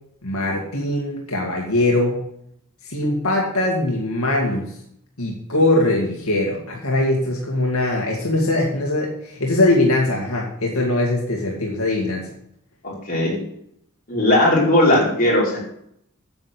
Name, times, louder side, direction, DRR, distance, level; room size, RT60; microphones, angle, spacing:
voice 1, 0.2-2.2 2.9-4.7 5.2-12.3, left 1 dB, 80° left, -1 dB, 2.2 m, -21 dB
voice 2, 12.8-13.4 14.1-15.6, left 1 dB, 40° left, -4 dB, 4.7 m, -18 dB
9.1 x 7.8 x 8.0 m, 0.73 s
head